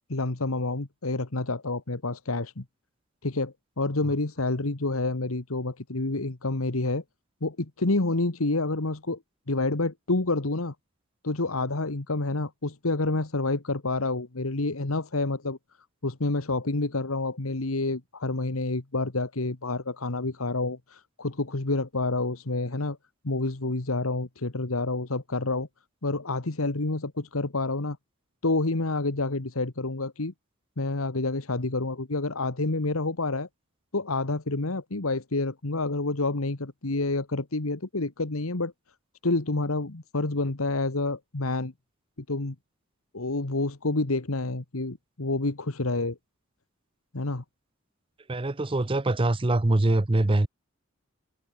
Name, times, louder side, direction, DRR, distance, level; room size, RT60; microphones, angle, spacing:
voice 1, 0.1-2.6 3.2-7.0 7.4-9.2 9.5-10.7 11.2-15.6 16.0-23.0 23.2-25.7 26.0-28.0 28.4-30.3 30.8-33.5 33.9-38.7 39.2-41.7 42.3-42.6 43.1-46.2 47.1-47.4, left 2 dB, 90° left, 1.6 m, -28 dB
voice 2, 48.3-50.5, right 2 dB, 25° right, 0.7 m, -23 dB
head